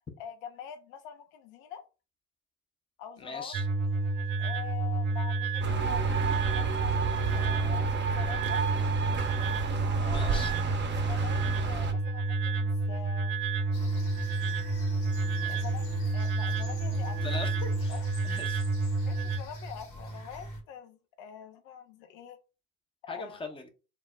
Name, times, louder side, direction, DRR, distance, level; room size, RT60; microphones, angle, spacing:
voice 1, 0.2-1.8 3.0-3.5 4.4-8.6 10.0-10.6 11.0-13.5 15.4-15.9 16.1-17.4 17.9-18.1 19.1-22.4 23.0-23.5, left 8 dB, 70° left, 0.6 m, -44 dB
voice 2, 3.2-3.7 10.1-10.5 17.2-17.9 18.2-18.6 23.1-23.7, left 3 dB, 15° left, 0.6 m, -40 dB
sound 1, 3.5-19.4, right 3 dB, 80° right, 0.5 m, -30 dB
sound 2, 5.6-11.9, right 7 dB, 30° right, 0.6 m, -32 dB
sound 3, 13.7-20.6, equal, 50° left, 1.1 m, -42 dB
2.1 x 2.1 x 3.6 m
hypercardioid pair, 60°, 39 cm